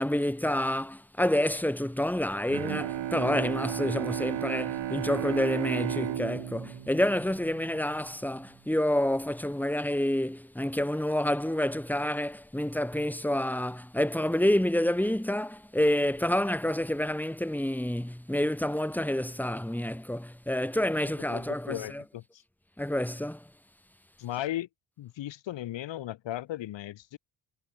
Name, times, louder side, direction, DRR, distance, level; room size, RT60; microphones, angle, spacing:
voice 1, 0.0-22.0 22.8-23.5, left 1 dB, 5° left, 4.2 m, -28 dB
Bowed string instrument, 2.5-8.1, right 12 dB, 80° right, 2.5 m, -34 dB
voice 2, 21.3-22.4 24.2-24.7 25.0-27.2, left 13 dB, 90° left, 6.0 m, -36 dB
cardioid pair, 65°, 43 cm